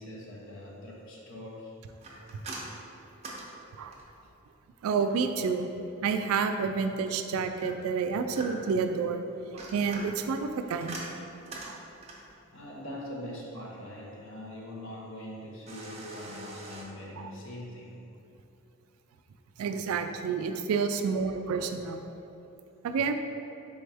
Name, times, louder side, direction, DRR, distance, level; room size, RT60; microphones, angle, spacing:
voice 1, 0.0-1.7 12.5-18.0, left 1 dB, 60° left, -3 dB, 0.7 m, -42 dB
sound 1, 2.0-4.3 7.6-8.8 9.4-12.3 15.7-16.8, right 2 dB, 30° right, 0.5 m, -43 dB
voice 2, 4.8-5.7 6.0-9.2 9.5-11.0 11.6-11.8 17.2-17.3 19.6-22.0 22.8-23.1, right 5 dB, 85° right, 8 dB, 0.3 m, -29 dB
4.3 x 3.4 x 3.3 m, 2.8 s
head